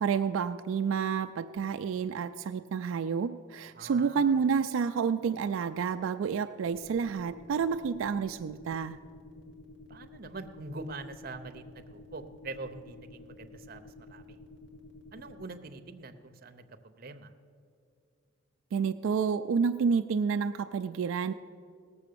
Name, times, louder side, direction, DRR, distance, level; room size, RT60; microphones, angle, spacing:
voice 1, 0.0-9.0 18.7-21.3, right 6 dB, 80° right, 8 dB, 0.3 m, -29 dB
voice 2, 3.7-4.4 9.9-14.4 15.1-17.3, right 3 dB, 45° right, 7 dB, 0.7 m, -44 dB
sound 1, 6.7-15.5, left 2 dB, 60° left, 1.4 m, -51 dB
17.5 x 7.0 x 6.7 m, 2.3 s
head